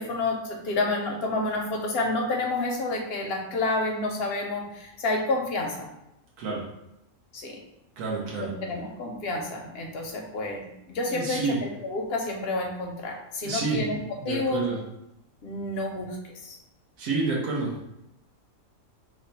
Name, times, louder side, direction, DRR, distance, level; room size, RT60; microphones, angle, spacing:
voice 1, 0.0-5.9 7.3-7.6 8.4-14.0 14.2-14.6 15.4-16.2 16.4-16.6, left 2 dB, 65° left, 1 dB, 0.6 m, -29 dB
voice 2, 8.0-8.5 11.1-11.6 13.4-13.9 14.2-14.8 17.0-17.9, right 4 dB, 85° right, -4 dB, 1.1 m, -29 dB
3.0 x 2.1 x 3.9 m, 0.87 s
omnidirectional pair, 1.4 m